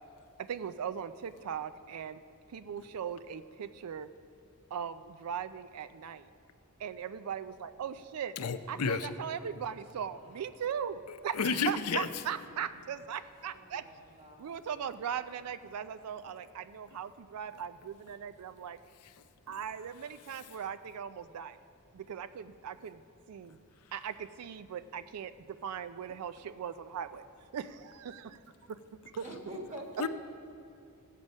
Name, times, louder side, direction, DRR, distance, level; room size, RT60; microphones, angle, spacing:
voice 1, 0.4-2.2 2.5-4.1 4.7-6.3 6.8-8.4 8.7-13.8 14.4-18.8 19.5-21.6 21.9-23.0 23.3-23.6 23.9-27.2 27.5-28.4 28.7-28.8 29.2-29.3, right 8 dB, 80° right, 13 dB, 0.4 m, -39 dB
voice 2, 8.4-9.1 11.3-12.1 30.0-30.1, left 5 dB, 80° left, 9 dB, 0.5 m, -31 dB
voice 3, 13.4-14.6 29.2-30.1, right 1 dB, 30° right, 1 dB, 1.5 m, -45 dB
15.5 x 7.5 x 5.3 m, 2.5 s
head